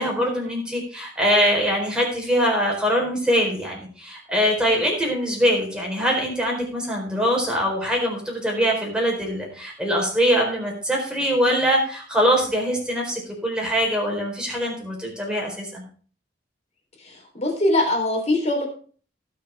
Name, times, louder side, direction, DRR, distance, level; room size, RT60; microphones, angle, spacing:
voice 1, 0.0-15.8, equal, 5° right, -1 dB, 4.4 m, -23 dB
voice 2, 17.0-18.7, left 1 dB, 40° left, 1 dB, 3.8 m, -22 dB
19.0 x 6.6 x 3.6 m, 0.42 s
head